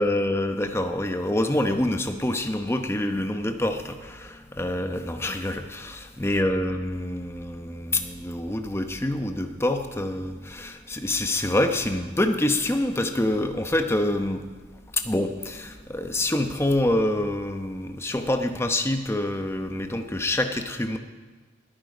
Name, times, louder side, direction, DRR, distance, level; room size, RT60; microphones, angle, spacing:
voice 1, 0.0-14.5 14.9-21.0, left 1 dB, 15° left, 6 dB, 0.9 m, -26 dB
20.5 x 9.4 x 5.1 m, 1.3 s
head